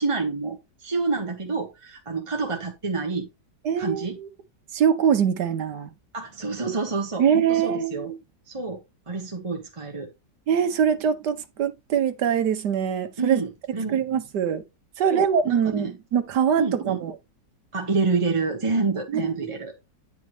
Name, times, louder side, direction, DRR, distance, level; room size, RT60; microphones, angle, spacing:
voice 1, 0.0-3.3 3.8-4.2 6.1-8.1 8.5-10.1 13.2-14.0 15.1-15.9 16.6-17.0 17.7-19.7, right 4 dB, 25° right, 0.9 m, -28 dB
voice 2, 3.6-4.3 4.7-5.9 7.2-8.2 10.5-13.4 13.9-14.6 15.0-17.1 19.1-19.5, right 8 dB, 75° right, 1.5 m, -23 dB
9.7 x 5.1 x 3.1 m
omnidirectional pair, 1.8 m